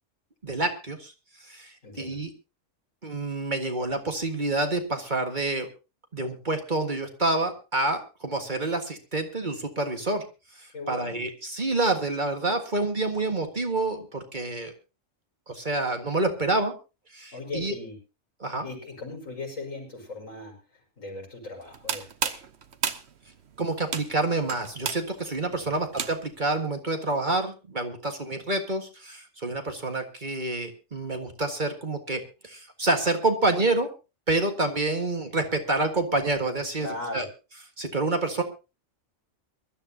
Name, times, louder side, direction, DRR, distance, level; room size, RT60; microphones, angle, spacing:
voice 1, 0.4-1.1 1.4-2.3 3.0-5.7 6.1-10.2 10.6-14.7 15.5-16.7 17.1-17.7 18.4-18.7 23.6-33.9 34.3-37.3 37.8-38.4, right 2 dB, 35° right, 4 dB, 1.8 m, -28 dB
voice 2, 1.8-2.2 10.7-11.2 17.3-18.0 18.6-20.6 21.0-22.4 25.5-25.7 36.8-37.2, left 2 dB, 80° left, -1 dB, 6.2 m, -38 dB
sound 1, 21.6-26.5, right 6 dB, 55° right, 1.2 m, -34 dB
23.0 x 13.0 x 2.8 m, 0.30 s
omnidirectional pair, 1.3 m